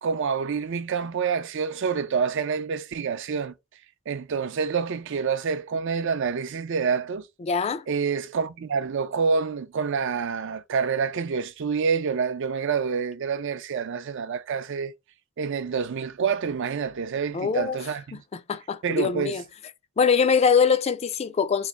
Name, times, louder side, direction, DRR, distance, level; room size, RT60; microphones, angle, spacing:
voice 1, 0.0-3.5 4.1-7.3 7.9-14.9 15.4-18.2 18.8-19.4, right 6 dB, 60° right, 0.4 m, -27 dB
voice 2, 7.4-7.8 17.3-17.8 18.3-19.4 20.0-21.7, left 6 dB, 30° left, 0.3 m, -23 dB
3.2 x 2.5 x 3.6 m
head